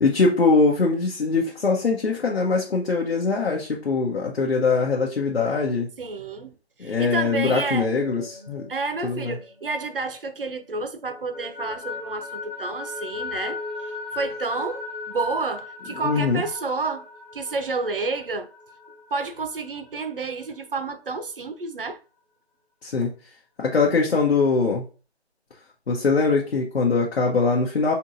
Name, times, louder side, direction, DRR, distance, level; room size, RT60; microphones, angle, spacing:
voice 1, 0.0-5.9 6.8-8.7 9.0-9.3 16.0-16.4 22.8-23.1 23.6-24.8 25.9-27.9, left 4 dB, 70° left, 1.0 m, -22 dB
voice 2, 6.0-6.5 6.8-7.9 8.7-13.6 14.1-17.1 17.3-18.5 19.1-22.0 23.0-23.1, right 3 dB, 55° right, 0.6 m, -30 dB
sound 1, 7.7-10.4 10.8-20.2, left 4 dB, 15° left, 0.6 m, -38 dB
4.4 x 2.9 x 2.6 m
figure-of-eight pair, 165°, 33 cm